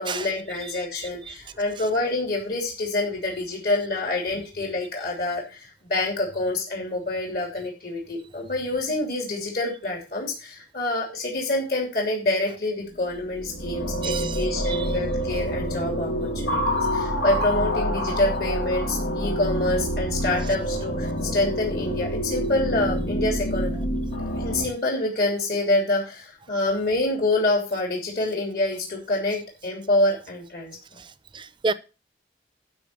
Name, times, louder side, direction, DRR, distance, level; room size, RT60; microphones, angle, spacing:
voice 1, 0.0-23.7 24.4-30.8, left 2 dB, 55° left, 3.1 m, -26 dB
sound 1, 13.0-24.6, equal, 80° left, 2.4 m, -27 dB
voice 2, 14.0-14.4 14.7-14.9 31.3-31.7, right 4 dB, 25° right, 0.7 m, -29 dB
12.0 x 4.2 x 7.8 m
head